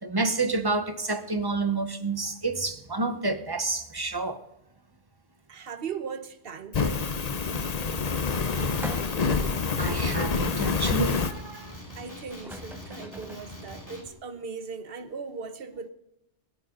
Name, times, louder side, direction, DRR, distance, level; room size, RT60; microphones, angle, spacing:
voice 1, 0.0-4.4 9.8-11.7, right 3 dB, 20° right, 0.8 m, -29 dB
voice 2, 5.5-7.1 12.0-15.9, right 5 dB, 55° right, 1.2 m, -38 dB
Fire, 6.7-11.3, left 4 dB, 40° left, 0.8 m, -27 dB
Male speech man speaking, 8.5-14.1, left 1 dB, 15° left, 2.4 m, -44 dB
sound 1, 8.8-9.4 10.1-10.2 12.0-12.1 12.3-13.5, equal, 5° right, 0.5 m, -41 dB
20.5 x 9.7 x 3.8 m
omnidirectional pair, 1.2 m